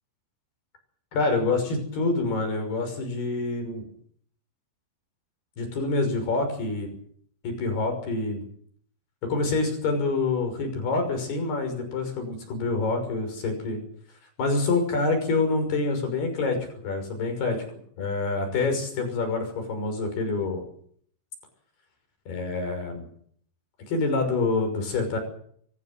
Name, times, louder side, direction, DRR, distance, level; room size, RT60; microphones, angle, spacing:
voice 1, 1.1-3.8 5.6-6.9 7.4-8.4 9.2-13.8 14.4-16.6 16.8-17.6 18.0-20.6 22.3-23.0 23.9-25.2, left 3 dB, 55° left, 5 dB, 8.0 m, -26 dB
24.0 x 16.0 x 9.2 m, 0.63 s
omnidirectional pair, 5.5 m